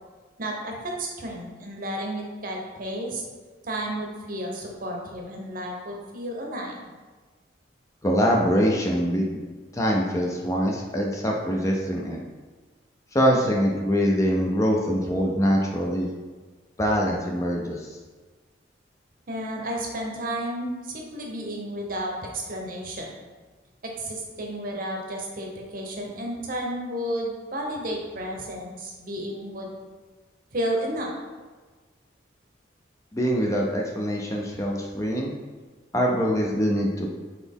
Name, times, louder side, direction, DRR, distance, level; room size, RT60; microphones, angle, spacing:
voice 1, 0.4-3.2 3.6-6.8 19.3-23.1 23.8-29.7 30.5-31.1, right 1 dB, 50° right, 0 dB, 0.7 m, -32 dB
voice 2, 8.0-9.4 9.7-12.2 13.1-16.1 16.8-17.9 33.1-35.3 35.9-37.1, equal, 15° left, -1 dB, 0.4 m, -24 dB
4.1 x 2.9 x 3.5 m, 1.3 s
head